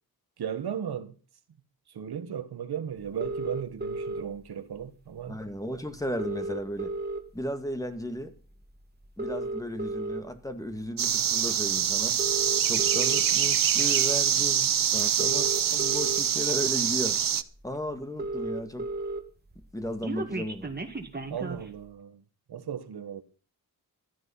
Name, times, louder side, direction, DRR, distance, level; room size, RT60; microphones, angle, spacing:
voice 1, 0.4-1.1 1.9-5.4 14.9-15.1 21.3-22.2 22.5-23.2, right 8 dB, 90° right, 1.5 m, -36 dB
sound 1, 3.2-4.2 5.4-5.5 5.7-5.8 6.0-7.5 8.0-8.2 9.0-10.2 10.9-11.1 12.0-13.2 14.4-14.5 15.0-16.2 16.9-17.0 17.3-17.4 17.6-17.7 17.9-19.2 19.5-21.7, right 2 dB, 25° right, 2.1 m, -34 dB
voice 2, 5.3-6.9 7.3-8.3 9.2-12.2 12.6-17.2 17.6-18.9 19.7-20.7, equal, 10° left, 2.0 m, -35 dB
sound 2, 11.0-17.4, right 9 dB, 60° right, 0.9 m, -25 dB
15.0 x 11.5 x 5.7 m
wide cardioid pair, 90°, 38 cm